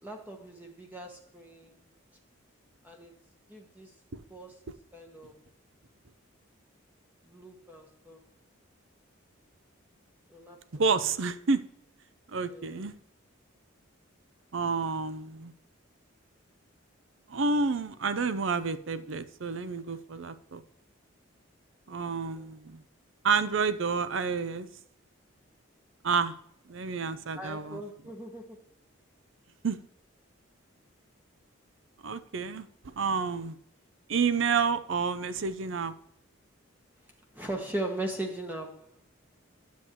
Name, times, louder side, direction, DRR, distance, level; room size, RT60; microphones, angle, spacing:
voice 1, 0.0-1.8 2.8-3.1 3.5-3.9 4.3-4.6 4.9-5.4 7.3-8.2 10.3-10.6 12.4-12.8 21.9-22.5 27.4-28.6 37.3-38.9, right 1 dB, 10° right, 1.0 m, -39 dB
voice 2, 10.7-11.6 12.3-12.9 14.5-15.5 17.3-20.6 21.9-22.8 23.2-24.7 26.0-26.3 26.7-27.8 29.6-29.8 32.0-32.7 33.0-33.6 34.1-35.9, right 5 dB, 65° right, 0.6 m, -29 dB
9.6 x 7.9 x 3.0 m
head